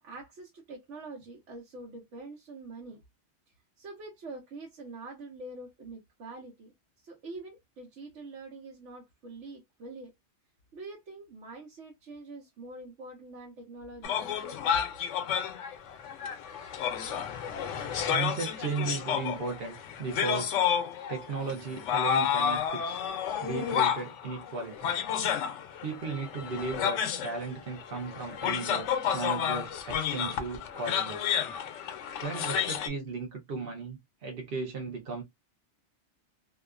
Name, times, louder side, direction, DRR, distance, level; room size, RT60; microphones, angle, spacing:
voice 1, 0.0-3.0 3.8-10.1 10.7-14.6, right 2 dB, 85° right, 1.2 m, -45 dB
sound 1, 14.0-32.9, left 8 dB, 90° left, 0.9 m, -31 dB
voice 2, 17.8-20.5 21.1-23.0 23.4-24.9 25.8-31.3 32.2-35.2, right 4 dB, 55° right, 0.9 m, -36 dB
2.8 x 2.3 x 2.3 m
omnidirectional pair, 1.2 m